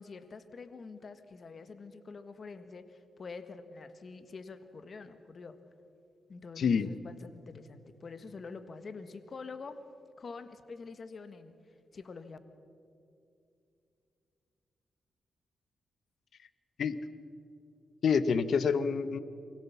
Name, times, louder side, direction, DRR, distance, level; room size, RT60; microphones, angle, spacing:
voice 1, 0.0-5.6 6.3-9.8 10.2-11.5 11.9-12.4, left 4 dB, 50° left, 10 dB, 1.5 m, -46 dB
voice 2, 6.6-6.9 16.8-17.0 18.0-19.2, left 6 dB, 70° left, 13 dB, 0.9 m, -27 dB
24.5 x 16.5 x 7.1 m, 2.5 s
cardioid pair, 70°, 0 cm